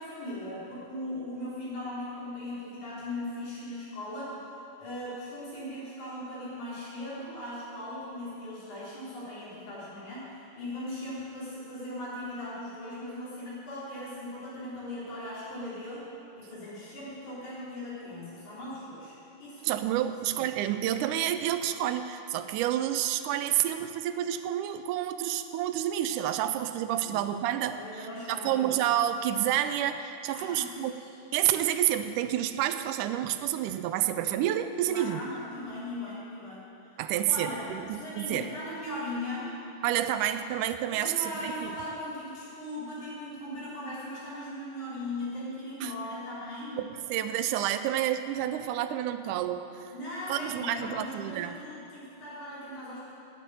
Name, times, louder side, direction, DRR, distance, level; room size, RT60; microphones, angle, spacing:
voice 1, 0.0-4.4 4.8-16.1 16.4-19.1 19.4-19.6 20.3-20.4 27.0-27.1 27.7-28.7 30.3-31.1 34.8-36.7 37.2-39.5 40.9-46.8 49.9-53.1, left 1 dB, 65° left, -8 dB, 5.1 m, -38 dB
voice 2, 19.6-27.8 28.3-30.9 31.3-35.2 37.0-38.5 39.8-41.7 45.8-45.9 46.8-49.9 50.3-51.6, right 11 dB, 80° right, 10 dB, 2.0 m, -29 dB
9.8 x 8.6 x 9.0 m, 2.7 s
omnidirectional pair, 3.7 m